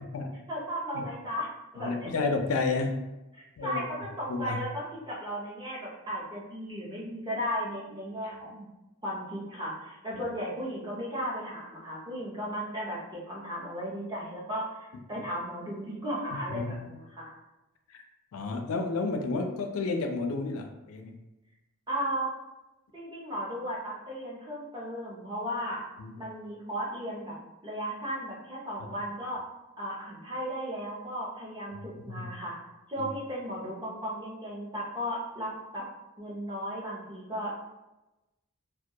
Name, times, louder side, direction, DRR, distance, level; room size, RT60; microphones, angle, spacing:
voice 1, 0.5-1.5 1.7-2.1 3.3-8.7 9.0-17.3 21.9-22.3 22.9-25.8 26.2-27.3 27.6-29.4 29.8-32.5 32.9-35.8 36.2-37.6, equal, 20° right, -5 dB, 0.6 m, -35 dB
voice 2, 1.8-3.1 3.6-3.8 4.3-4.6 10.1-10.2 16.5-16.8 17.9-18.0 18.3-21.2 26.0-26.1 32.1-32.3 33.0-33.1, left 3 dB, 80° left, 4 dB, 0.4 m, -31 dB
2.2 x 2.2 x 2.7 m, 1.0 s
head